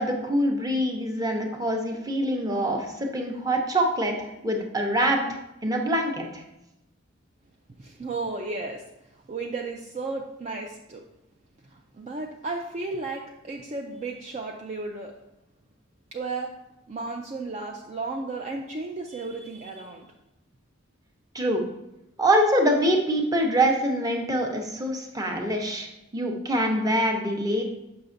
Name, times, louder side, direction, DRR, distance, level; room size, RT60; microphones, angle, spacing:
voice 1, 0.0-5.2 5.6-6.4 21.3-21.6 22.2-25.9 26.1-27.6, right 1 dB, 20° right, 2 dB, 0.8 m, -24 dB
voice 2, 7.8-8.8 9.3-11.0 11.7-15.1 16.1-16.5 16.9-20.1, right 3 dB, 35° right, 1 dB, 0.4 m, -34 dB
6.8 x 5.8 x 2.6 m, 0.89 s
head